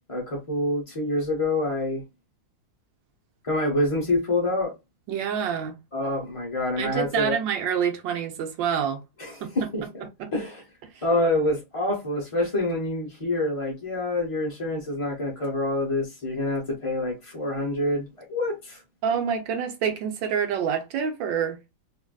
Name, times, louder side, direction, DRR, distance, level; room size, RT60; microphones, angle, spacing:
voice 1, 0.1-2.0 3.4-4.7 5.9-7.4 9.2-10.1 10.3-10.6 11.0-18.8, left 2 dB, 35° left, 0.5 m, -27 dB
voice 2, 5.1-5.8 6.8-9.0 9.4-9.5 10.2-10.3 19.0-21.6, right 7 dB, 75° right, 1.4 m, -27 dB
3.3 x 2.5 x 2.3 m
omnidirectional pair, 2.0 m